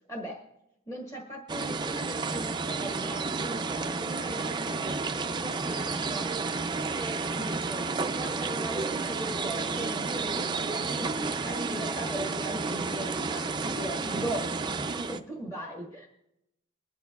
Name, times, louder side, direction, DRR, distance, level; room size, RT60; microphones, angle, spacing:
voice 1, 0.1-0.4 0.9-6.3 6.9-16.1, right 1 dB, 15° left, 0 dB, 1.4 m, -39 dB
sound 1, 1.5-15.2, right 4 dB, 20° right, 0.4 m, -31 dB
22.5 x 10.5 x 2.3 m, 0.86 s
head